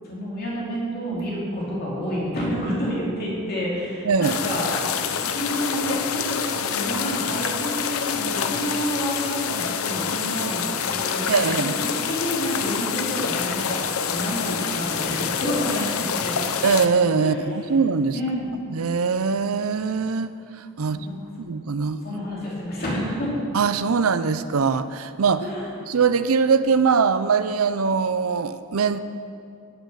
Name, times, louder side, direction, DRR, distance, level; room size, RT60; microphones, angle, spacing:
voice 1, 0.1-16.4 17.2-17.4 18.1-18.5 20.9-21.2 22.0-23.3 25.4-25.7, equal, 45° left, -6 dB, 2.9 m, -29 dB
voice 2, 4.0-4.4 11.3-11.7 16.6-18.2 18.7-21.0 21.4-22.2 23.5-25.4 25.9-29.0, right 5 dB, 75° right, 12 dB, 0.5 m, -22 dB
sound 1, 4.2-16.9, left 7 dB, 75° left, 0.7 m, -27 dB
18.0 x 7.1 x 5.7 m, 2.5 s
head